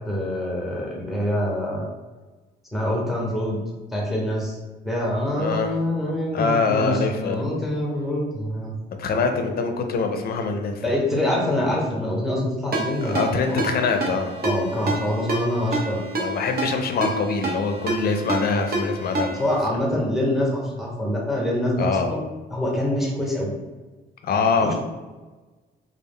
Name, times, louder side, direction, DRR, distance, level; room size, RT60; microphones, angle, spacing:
voice 1, 0.1-1.9 2.7-3.6 3.9-4.6 4.8-8.7 9.1-9.2 10.8-13.6 14.4-16.0 19.4-22.2 22.5-23.6 24.6-24.7, left 1 dB, ahead, -3 dB, 0.9 m, -25 dB
voice 2, 5.4-5.7 6.3-7.4 9.0-10.8 13.0-14.3 14.8-15.1 16.2-19.3 21.8-22.2 24.2-24.7, left 4 dB, 50° left, 5 dB, 0.4 m, -24 dB
Ringtone, 12.7-19.6, right 2 dB, 50° right, 0.6 m, -28 dB
2.2 x 2.0 x 3.5 m, 1.2 s
cardioid pair, 90°, 20 cm